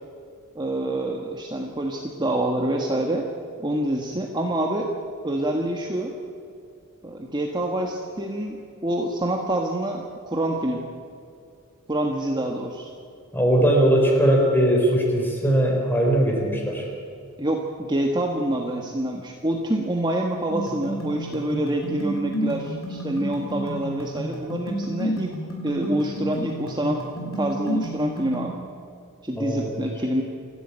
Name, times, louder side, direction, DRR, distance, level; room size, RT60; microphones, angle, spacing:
voice 1, 0.5-3.2 3.6-4.9 5.2-6.1 7.0-10.8 11.9-12.9 17.4-25.3 25.6-28.6 29.2-30.2, right 1 dB, 20° right, 1 dB, 1.5 m, -26 dB
voice 2, 13.3-16.9 29.4-29.8, right 1 dB, 10° left, 0 dB, 4.5 m, -20 dB
sound 1, 20.5-28.5, right 1 dB, 65° left, 5.5 m, -31 dB
27.5 x 12.5 x 8.8 m, 2.4 s
head